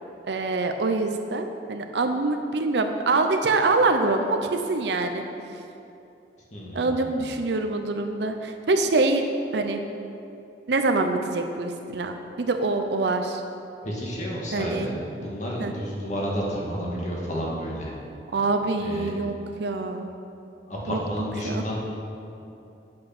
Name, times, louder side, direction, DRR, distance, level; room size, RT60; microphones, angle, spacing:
voice 1, 0.2-5.2 6.7-9.2 9.5-9.8 10.7-13.4 14.5-14.9 15.6-15.7 18.3-20.0 20.9-21.6, right 3 dB, 75° right, 5 dB, 0.6 m, -25 dB
voice 2, 6.5-7.1 13.8-14.9 15.2-17.9 18.8-19.1 20.7-21.8, equal, 40° left, -4 dB, 2.0 m, -31 dB
8.6 x 7.7 x 6.0 m, 2.8 s
head